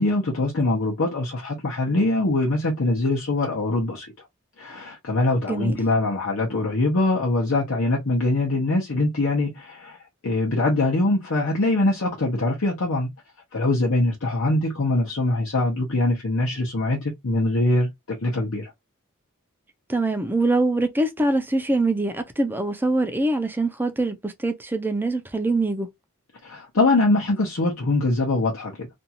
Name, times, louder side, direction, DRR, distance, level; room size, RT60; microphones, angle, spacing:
voice 1, 0.0-4.1 4.6-10.0 10.2-13.1 13.5-18.7 26.4-28.9, left 2 dB, 65° left, 0.8 m, -23 dB
voice 2, 19.9-25.9, right 2 dB, 10° right, 0.5 m, -23 dB
2.6 x 2.3 x 2.7 m
head